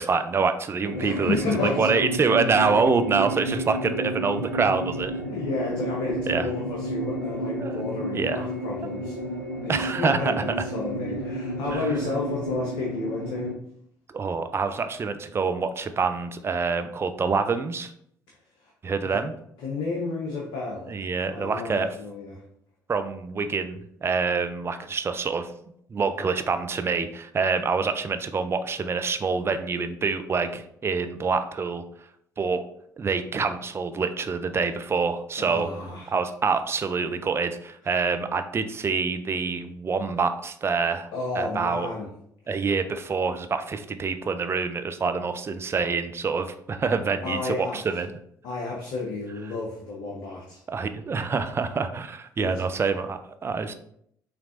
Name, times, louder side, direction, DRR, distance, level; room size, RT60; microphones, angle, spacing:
voice 1, 0.0-5.1 6.3-6.5 7.6-7.8 8.1-8.4 9.7-10.4 11.7-11.9 14.1-17.9 18.8-19.3 20.9-21.9 22.9-25.5 25.9-31.8 32.4-32.6 33.0-35.7 36.1-41.1 41.4-41.9 42.5-48.1 50.7-53.7, right 4 dB, 25° right, 9 dB, 0.5 m, -26 dB
sound 1, 0.8-13.5, right 1 dB, 90° left, 0.4 m, -31 dB
voice 2, 1.0-1.9 5.3-9.2 9.6-13.5 18.6-18.7 19.0-19.2 19.6-20.9 21.3-22.4 35.4-36.1 41.1-42.1 47.2-47.8 48.4-50.6 52.4-52.6, left 3 dB, 60° left, -2 dB, 0.9 m, -32 dB
5.9 x 3.2 x 2.5 m, 0.69 s
figure-of-eight pair, 50°, 9 cm